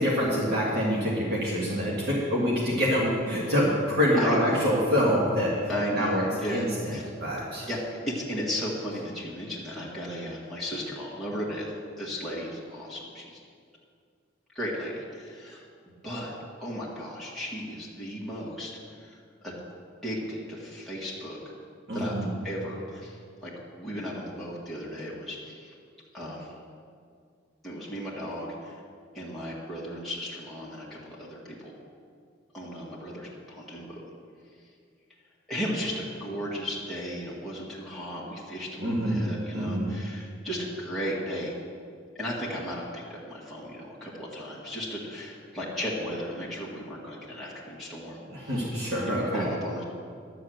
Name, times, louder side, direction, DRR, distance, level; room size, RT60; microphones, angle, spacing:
voice 1, 0.0-5.6 5.9-6.2 6.5-7.7 21.9-22.3 38.8-39.2 39.5-39.9 48.3-49.4, equal, 55° right, -5 dB, 1.9 m, -26 dB
voice 2, 5.7-7.0 7.7-13.4 14.6-15.6 16.0-16.3 16.6-19.5 20.0-21.4 21.9-22.2 22.4-23.5 23.8-25.7 26.1-26.5 27.6-28.8 29.1-31.7 32.5-34.0 35.5-41.6 42.2-48.7 49.0-49.8, equal, ahead, -7 dB, 1.8 m, -35 dB
11.0 x 6.5 x 7.8 m, 2.2 s
head